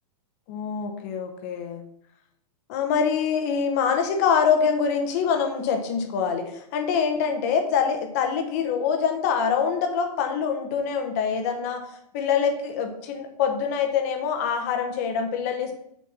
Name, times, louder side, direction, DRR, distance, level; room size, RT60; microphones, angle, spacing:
voice 1, 0.5-1.8 2.7-15.7, left 6 dB, 25° left, 5 dB, 0.7 m, -25 dB
6.3 x 4.3 x 5.9 m, 0.74 s
hypercardioid pair, 180°, 21 cm